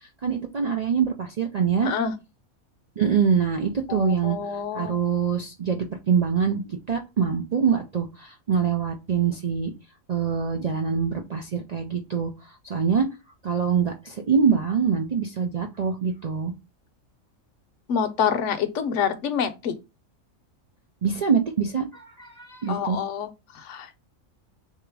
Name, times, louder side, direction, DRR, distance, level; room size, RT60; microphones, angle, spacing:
voice 1, 0.2-1.9 3.0-9.7 10.1-12.3 12.6-13.1 13.4-16.5 21.0-23.0, right 6 dB, 65° right, 0.4 m, -24 dB
voice 2, 1.8-2.1 3.9-5.0 17.9-19.7 22.7-23.3 23.5-24.0, left 7 dB, 65° left, 1.0 m, -27 dB
3.8 x 2.8 x 4.6 m
omnidirectional pair, 1.4 m